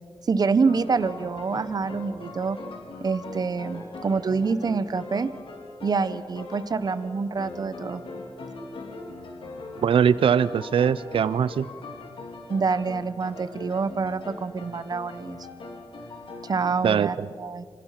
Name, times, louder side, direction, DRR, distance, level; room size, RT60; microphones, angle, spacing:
voice 1, 0.2-2.6 3.0-5.3 5.8-8.0 12.5-15.4 16.5-17.6, right 4 dB, 45° right, 14 dB, 1.1 m, -26 dB
sound 1, 0.7-16.8, left 3 dB, 80° left, 3.8 m, -41 dB
voice 2, 9.8-11.7 16.8-17.3, right 7 dB, 85° right, 16 dB, 0.6 m, -21 dB
27.5 x 27.0 x 5.9 m, 2.1 s
wide cardioid pair, 125°, 9 cm